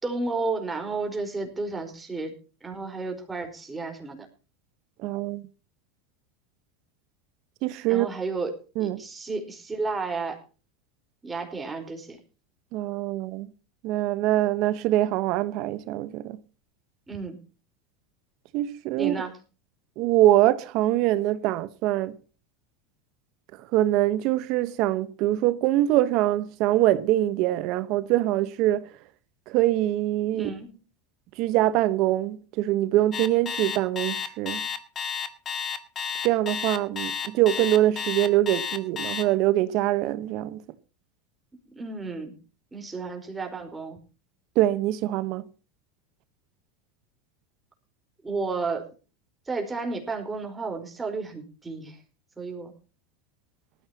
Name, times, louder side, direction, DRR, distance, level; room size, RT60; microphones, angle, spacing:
voice 1, 0.0-4.2 7.9-10.4 11.2-12.2 17.1-17.4 19.0-19.4 30.3-30.8 41.7-42.3 42.7-44.0 48.2-48.9 49.5-52.0 52.4-52.7, right 3 dB, 15° right, 4.7 m, -32 dB
voice 2, 5.0-5.4 7.6-8.1 8.8-9.0 12.7-13.5 13.8-16.4 18.5-19.1 20.0-22.2 23.7-28.8 29.5-30.5 31.4-34.6 36.2-40.6 44.6-45.4, right 14 dB, 55° right, 1.1 m, -23 dB
Alarm, 33.1-39.2, left 7 dB, 30° left, 1.8 m, -31 dB
19.0 x 14.0 x 2.9 m
supercardioid pair, 115°, 0 cm